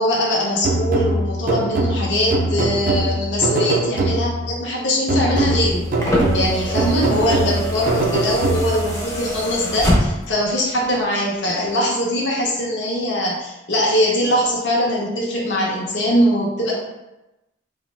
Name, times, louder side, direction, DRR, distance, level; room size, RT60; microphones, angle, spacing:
voice 1, 0.0-5.9 6.3-16.7, equal, 65° left, -4 dB, 0.6 m, -21 dB
sound 1, 0.6-4.5 5.1-9.0, right 2 dB, 45° right, 0.3 m, -22 dB
sound 2, 5.3-10.4 11.6-11.7, equal, 15° left, 0.4 m, -24 dB
2.6 x 2.1 x 3.0 m, 0.98 s
head